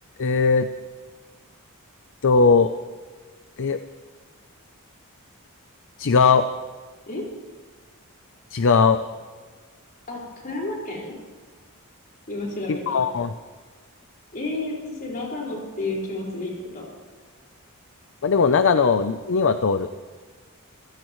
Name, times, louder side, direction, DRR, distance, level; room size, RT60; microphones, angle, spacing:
voice 1, 0.2-0.7 2.2-2.7 3.6-3.8 6.0-6.5 8.5-9.0 12.7-13.3 18.2-19.9, left 5 dB, 60° left, 10 dB, 0.6 m, -19 dB
voice 2, 10.1-11.2 12.3-13.0 14.3-16.9, left 2 dB, 40° left, -2 dB, 5.0 m, -31 dB
25.5 x 16.0 x 3.1 m, 1.5 s
head